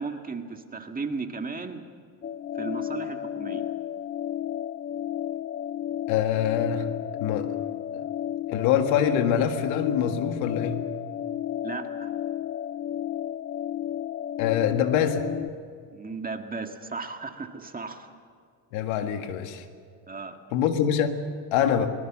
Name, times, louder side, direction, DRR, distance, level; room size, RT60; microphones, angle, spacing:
voice 1, 0.0-1.8 2.5-3.6 11.6-12.1 15.9-18.2 20.1-20.4, right 4 dB, 20° right, 5 dB, 1.8 m, -35 dB
sound 1, 2.2-15.5, left 11 dB, 25° left, 0.6 m, -32 dB
voice 2, 6.1-6.9 7.1-7.5 7.9-8.1 8.5-10.8 14.4-15.2 18.7-19.7 20.5-21.2 21.5-21.9, left 9 dB, 85° left, 7 dB, 1.9 m, -24 dB
22.5 x 20.0 x 7.4 m, 2.2 s
cardioid pair, 110°, 45 cm